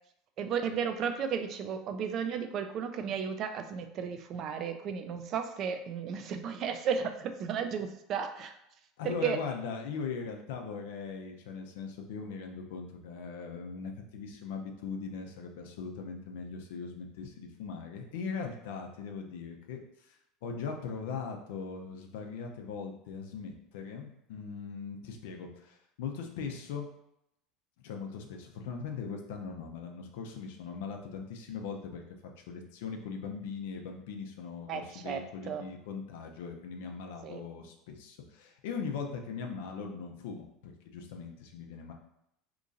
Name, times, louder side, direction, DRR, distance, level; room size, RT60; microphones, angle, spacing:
voice 1, 0.4-8.6 9.0-9.4 34.7-35.6 37.2-37.4, right 7 dB, 50° right, 7 dB, 0.4 m, -34 dB
voice 2, 9.0-20.2 20.4-26.9 27.8-32.0 32.4-41.9, left 5 dB, 75° left, 3 dB, 0.6 m, -40 dB
3.0 x 2.6 x 3.8 m, 0.81 s
hypercardioid pair, 90°, 0 cm